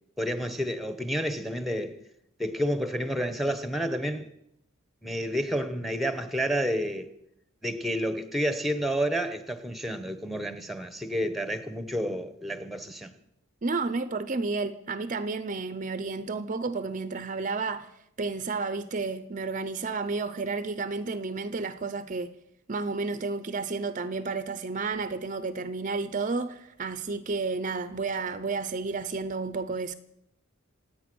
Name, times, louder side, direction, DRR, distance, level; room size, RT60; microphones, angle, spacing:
voice 1, 0.2-2.0 2.4-4.3 5.0-7.1 7.6-13.1, equal, ahead, 1.0 m, -30 dB
voice 2, 13.6-17.9 18.2-22.3 22.7-29.9, right 4 dB, 35° right, 0.6 m, -31 dB
26.5 x 8.9 x 6.2 m
head